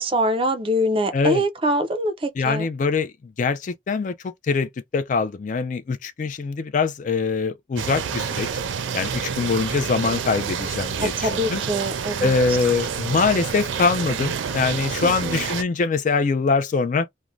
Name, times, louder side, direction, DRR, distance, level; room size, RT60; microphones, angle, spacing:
voice 1, 0.0-2.7 11.0-12.6 15.0-15.4, equal, 30° right, 0.4 m, -24 dB
voice 2, 2.4-3.1 3.4-4.1 4.5-8.5 8.9-11.6 12.2-17.1, left 4 dB, 40° left, 0.3 m, -23 dB
sound 1, 7.8-15.6, right 7 dB, 85° right, 0.4 m, -28 dB
2.5 x 2.0 x 3.1 m
head